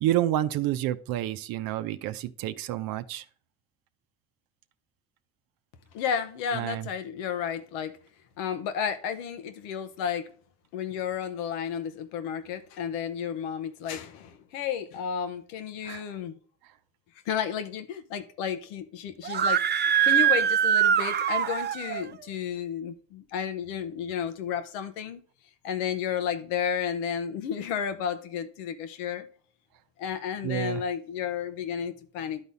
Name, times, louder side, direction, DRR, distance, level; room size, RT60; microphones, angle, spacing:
voice 1, 0.0-3.2 6.5-6.9 15.8-16.0 19.2-19.4 30.4-30.8, right 13 dB, 75° right, 0.7 m, -29 dB
voice 2, 5.9-7.9 8.4-10.3 10.7-16.4 17.3-25.2 25.6-29.3 30.0-32.4, left 8 dB, 90° left, 0.9 m, -32 dB
Screaming, 19.2-22.0, right 9 dB, 30° right, 0.4 m, -23 dB
12.0 x 4.1 x 3.4 m
supercardioid pair, 60°, 36 cm